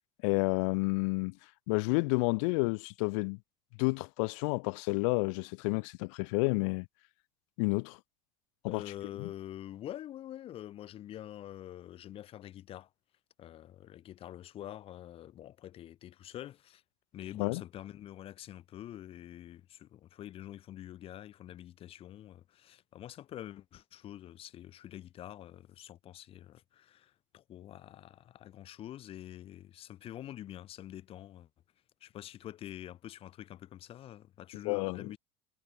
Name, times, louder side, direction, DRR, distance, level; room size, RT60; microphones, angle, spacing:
voice 1, 0.2-1.4 1.7-3.4 3.8-6.9 7.6-8.0 8.6-8.8 9.2-9.3 17.4-17.6 34.6-35.1, left 31 dB, 65° left, 0.8 m, -30 dB
voice 2, 8.7-12.9 13.4-16.8 17.1-31.5 32.0-35.2, left 12 dB, 30° left, 7.7 m, -46 dB
cardioid pair, 170°, 18 cm